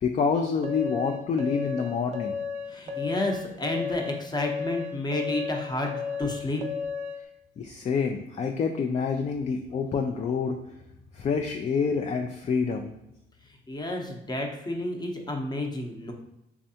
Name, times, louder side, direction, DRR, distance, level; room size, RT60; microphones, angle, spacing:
voice 1, 0.0-2.4 7.6-10.6 11.2-12.9, left 5 dB, 35° left, 4 dB, 0.4 m, -27 dB
sound 1, 0.6-7.2, left 6 dB, 35° right, 0.5 m, -33 dB
voice 2, 2.7-6.6 13.7-16.1, left 2 dB, 20° left, 2 dB, 0.7 m, -31 dB
3.5 x 3.2 x 2.7 m, 0.88 s
cardioid pair, 90°, 20 cm